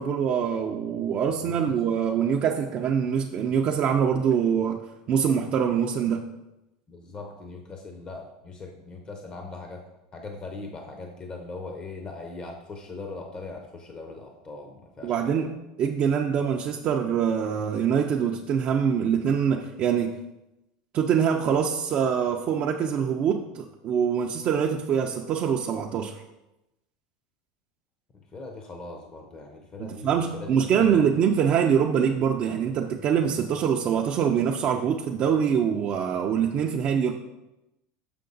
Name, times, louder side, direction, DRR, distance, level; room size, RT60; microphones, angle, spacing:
voice 1, 0.0-6.3 15.0-15.5 15.8-20.2 20.9-26.2 29.8-37.1, right 7 dB, 35° right, 1 dB, 0.5 m, -24 dB
voice 2, 1.3-1.8 6.9-9.8 10.1-15.5 28.1-31.0, left 3 dB, 25° left, 3 dB, 0.7 m, -40 dB
6.7 x 5.7 x 3.9 m, 0.94 s
supercardioid pair, 150°, 4 cm